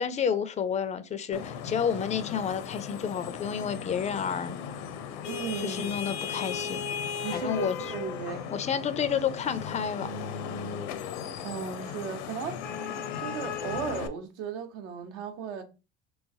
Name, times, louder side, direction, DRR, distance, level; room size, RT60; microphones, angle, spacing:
voice 1, 0.0-4.6 5.6-6.8 7.3-7.8 8.5-10.1, left 7 dB, 20° left, 0.3 m, -30 dB
Vehicle horn car horn honking / Traffic noise roadway noise, 1.3-14.1, left 7 dB, 75° left, 0.6 m, -36 dB
voice 2, 5.3-6.0 7.2-8.5 11.4-12.6 13.2-15.6, right 6 dB, 75° right, 0.9 m, -35 dB
3.2 x 3.1 x 2.7 m
supercardioid pair, 95°, 35 cm